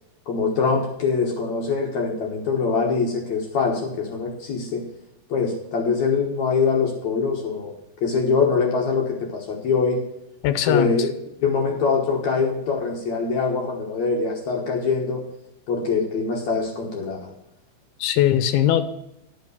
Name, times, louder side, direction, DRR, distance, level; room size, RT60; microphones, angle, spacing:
voice 1, 0.3-4.8 5.3-7.7 8.0-10.0 10.7-11.1 11.4-15.2 15.7-17.3, left 4 dB, 60° left, 0 dB, 2.2 m, -23 dB
voice 2, 10.4-11.0 18.0-18.8, left 11 dB, 85° left, 11 dB, 2.7 m, -20 dB
10.5 x 5.7 x 6.8 m, 0.85 s
omnidirectional pair, 4.5 m